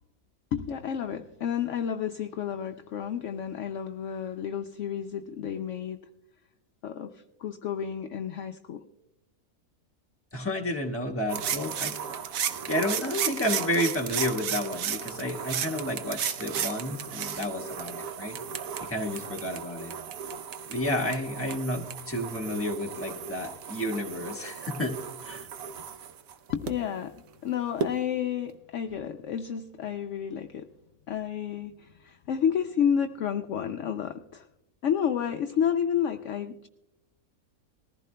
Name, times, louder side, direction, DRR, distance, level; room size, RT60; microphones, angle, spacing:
voice 1, 0.5-6.0 6.8-8.8 26.5-30.7 31.1-34.5 34.8-36.7, left 8 dB, 65° left, 7 dB, 0.8 m, -31 dB
voice 2, 10.3-11.9 12.7-18.4 18.8-19.9 20.7-24.9 25.2-25.5, left 1 dB, 10° left, -1 dB, 1.3 m, -31 dB
sound 1, 11.3-26.7 27.8-27.9, right 8 dB, 70° right, 1.1 m, -34 dB
20.0 x 14.5 x 2.2 m, 0.90 s
omnidirectional pair, 1.5 m